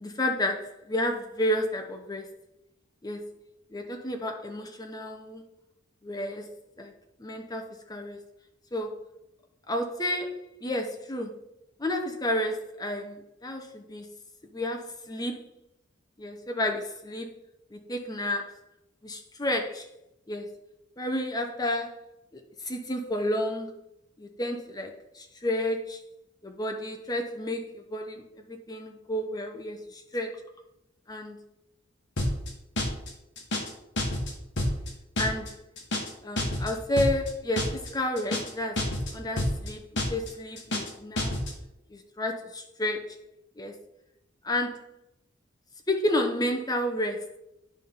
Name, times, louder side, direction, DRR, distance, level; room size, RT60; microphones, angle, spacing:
voice 1, 0.0-2.3 3.0-3.4 3.7-5.4 6.0-6.9 7.2-8.2 8.7-9.0 9.7-11.4 11.8-14.1 14.4-15.5 16.2-17.3 17.7-18.5 19.0-19.9 20.3-20.5 21.0-22.0 22.3-23.8 24.2-26.0 26.4-30.4 31.1-31.4 35.2-35.6 36.2-41.3 41.9-43.2 43.6-43.8 44.4-44.9 45.9-47.3, left 1 dB, 20° left, 4 dB, 0.9 m, -31 dB
sound 1, 32.2-32.5 32.8-33.1 33.4-33.7 34.0-34.3 34.6-34.9 35.2-35.5 35.8-36.1 36.4-36.7 37.0-37.3 37.6-37.9 38.2-38.5 38.8-39.1 39.4-39.7 40.0-40.3 40.6-40.9 41.2-41.5, left 1 dB, 65° left, 1.7 m, -28 dB
9.8 x 3.8 x 5.6 m, 0.88 s
head